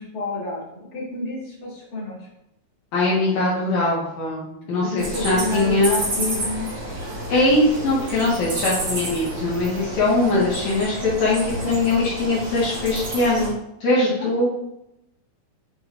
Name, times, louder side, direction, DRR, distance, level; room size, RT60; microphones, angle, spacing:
voice 1, 0.0-2.3 4.8-6.7 14.2-14.4, left 2 dB, 30° left, -8 dB, 2.9 m, -30 dB
voice 2, 2.9-6.0 7.3-14.5, left 2 dB, 70° left, -6 dB, 2.7 m, -21 dB
sound 1, 5.0-13.5, right 1 dB, 40° right, 2.5 m, -30 dB
8.4 x 4.9 x 2.5 m, 0.85 s
omnidirectional pair, 3.4 m